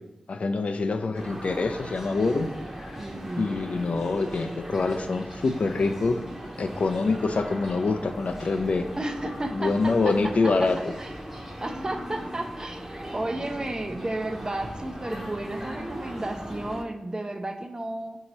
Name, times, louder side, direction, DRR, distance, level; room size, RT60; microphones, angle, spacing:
voice 1, 0.3-2.5 2.8-3.0 3.4-6.2 6.6-8.9 9.5-10.8, left 3 dB, 65° left, 7 dB, 0.3 m, -25 dB
sound 1, 1.1-16.8, equal, 15° right, 0.8 m, -38 dB
voice 2, 3.0-3.5 9.0-10.7 11.0-11.1 11.6-18.2, right 1 dB, 30° right, 5 dB, 0.4 m, -33 dB
5.1 x 2.7 x 3.0 m, 0.94 s
cardioid pair, 45°, 2 cm